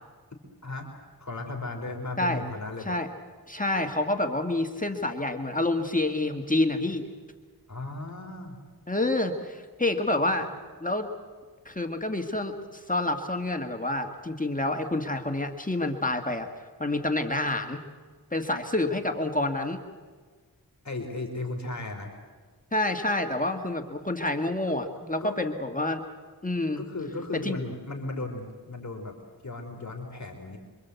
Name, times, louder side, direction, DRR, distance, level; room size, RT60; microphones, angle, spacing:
voice 1, 1.2-3.0 7.7-8.6 20.8-22.1 25.2-25.4 26.8-29.2 29.4-30.6, left 2 dB, 45° left, 1 dB, 3.8 m, -35 dB
voice 2, 3.5-7.0 8.9-10.5 10.8-11.1 11.7-16.5 16.8-17.8 18.3-19.8 22.7-26.0 26.4-26.8 27.4-27.6, left 2 dB, 20° left, 5 dB, 1.8 m, -28 dB
26.0 x 24.5 x 8.3 m, 1.5 s
wide cardioid pair, 70°, 38 cm